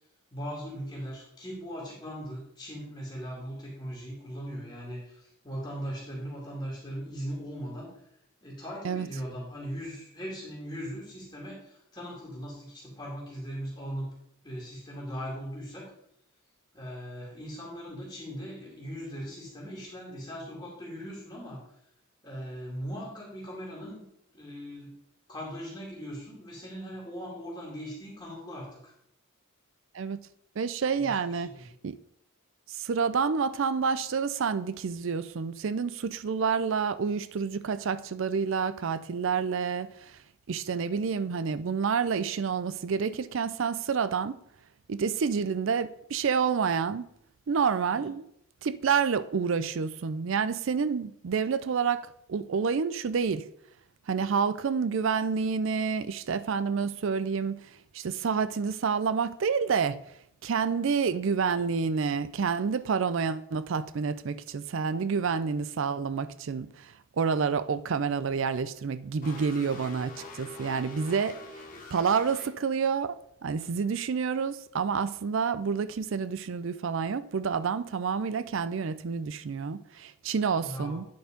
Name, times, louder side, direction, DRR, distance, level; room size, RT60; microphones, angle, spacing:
voice 1, 0.3-7.9 8.4-14.1 14.4-15.9 16.7-21.6 22.2-24.1 24.3-25.0 25.3-28.9 30.9-31.7 47.8-48.1 80.6-81.0, equal, 20° left, 2.2 m, -39 dB
voice 2, 30.6-31.5 31.8-32.0 32.7-39.9 40.5-44.4 44.9-47.1 47.5-48.2 48.6-53.5 54.1-57.6 57.9-60.0 60.4-71.4 71.9-81.1, right 6 dB, 65° right, 0.4 m, -28 dB
sound 1, 69.2-72.5, left 2 dB, 40° left, 1.1 m, -44 dB
9.4 x 4.5 x 5.0 m
head